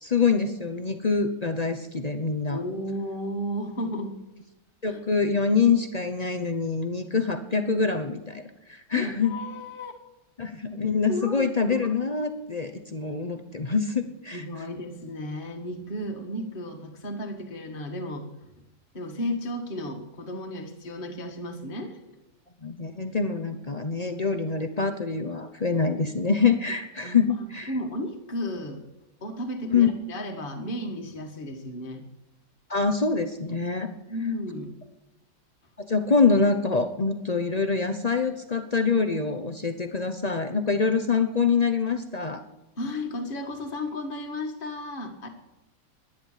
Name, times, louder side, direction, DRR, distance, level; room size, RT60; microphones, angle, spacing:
voice 1, 0.0-2.6 4.8-8.4 8.7-9.3 10.4-14.4 22.6-27.7 29.7-29.9 32.7-33.9 35.8-42.4, left 5 dB, 55° left, 7 dB, 0.4 m, -25 dB
voice 2, 2.5-4.2 4.9-5.0 8.9-9.9 11.1-11.5 14.3-18.3 18.9-22.2 27.0-27.3 27.7-28.8 29.2-32.0 34.1-34.7 42.8-45.3, left 1 dB, 30° left, 2 dB, 1.8 m, -33 dB
11.0 x 11.0 x 7.4 m, 0.96 s
omnidirectional pair, 2.1 m